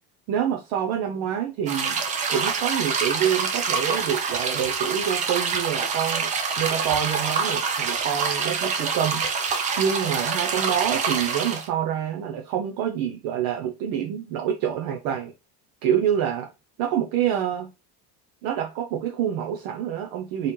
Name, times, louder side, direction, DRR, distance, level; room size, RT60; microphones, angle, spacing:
voice 1, 0.3-2.0 2.3-9.2 9.8-15.3 15.8-16.5 16.8-17.7 18.4-20.5, right 9 dB, 55° right, 0.8 m, -27 dB
sound 1, 1.7-11.7, right 5 dB, 20° right, 0.3 m, -26 dB
4.2 x 4.0 x 3.1 m
cardioid pair, 175°, 41 cm